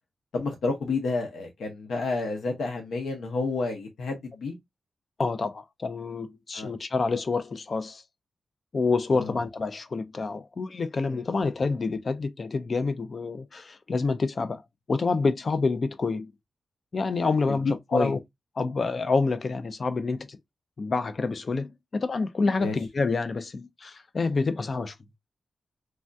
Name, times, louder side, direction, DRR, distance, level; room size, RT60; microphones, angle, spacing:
voice 1, 0.3-4.6 6.5-6.7 9.2-9.4 11.1-11.2 17.5-17.6 17.9-18.1 22.6-22.7, left 3 dB, 90° left, 0.7 m, -30 dB
voice 2, 5.2-8.0 8.7-14.6 14.9-16.3 16.9-18.2 18.6-20.4 20.8-24.9, left 4 dB, 45° left, 0.4 m, -27 dB
3.3 x 2.3 x 2.5 m
wide cardioid pair, 100°, 0 cm